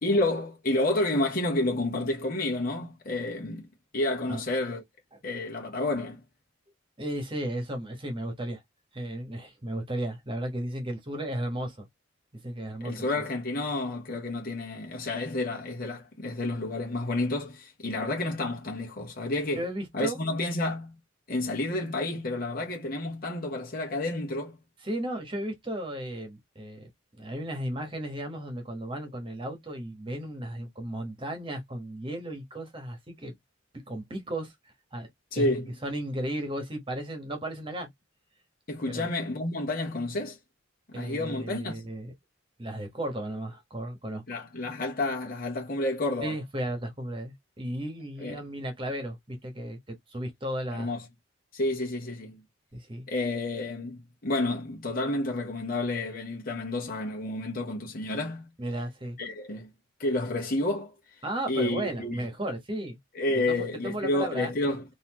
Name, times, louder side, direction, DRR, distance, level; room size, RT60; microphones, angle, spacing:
voice 1, 0.0-3.7 3.9-4.8 5.2-6.2 12.8-19.7 19.9-20.9 21.3-24.6 35.3-35.7 38.7-40.4 40.9-41.8 44.3-46.4 48.2-48.4 50.7-51.0 51.5-52.4 53.1-58.5 59.2-59.7 60.0-60.9 61.5-62.3 63.1-64.8, left 2 dB, 50° left, 1.0 m, -30 dB
voice 2, 7.0-8.6 8.9-11.9 12.4-13.2 19.5-20.2 24.8-26.9 27.2-33.3 33.9-34.5 34.9-37.9 38.9-39.1 40.9-42.1 42.6-44.2 46.2-50.9 52.7-53.1 58.6-59.2 61.2-63.0 63.3-64.5, right 1 dB, 25° right, 1.3 m, -34 dB
4.0 x 2.7 x 2.9 m
head